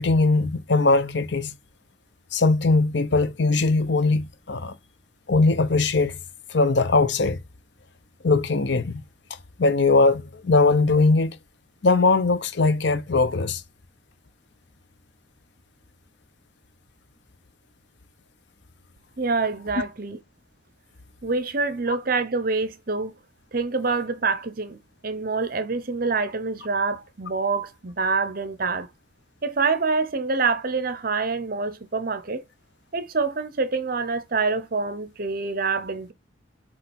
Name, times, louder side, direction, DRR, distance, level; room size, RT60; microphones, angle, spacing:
voice 1, 0.0-1.5 2.3-4.7 5.3-6.1 6.5-7.4 8.2-9.0 9.6-11.4 11.8-13.6, left 3 dB, 60° left, 0.8 m, -20 dB
voice 2, 19.2-20.2 21.2-23.1 23.5-28.9 29.4-32.4 32.9-36.1, right 4 dB, 45° right, 0.8 m, -26 dB
7.8 x 3.1 x 4.3 m
head